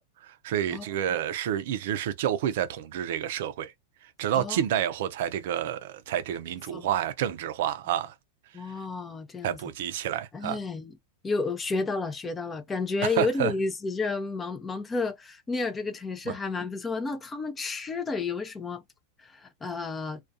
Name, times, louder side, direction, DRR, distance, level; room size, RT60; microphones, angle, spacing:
voice 1, 0.2-3.7 4.0-8.1 9.4-10.6 13.0-13.5 16.3-16.4, right 10 dB, 65° right, 0.4 m, -29 dB
voice 2, 8.5-9.6 10.3-10.9 11.2-18.8 19.2-20.2, left 3 dB, 20° left, 0.5 m, -31 dB
2.3 x 2.2 x 2.6 m
hypercardioid pair, 100°, 0 cm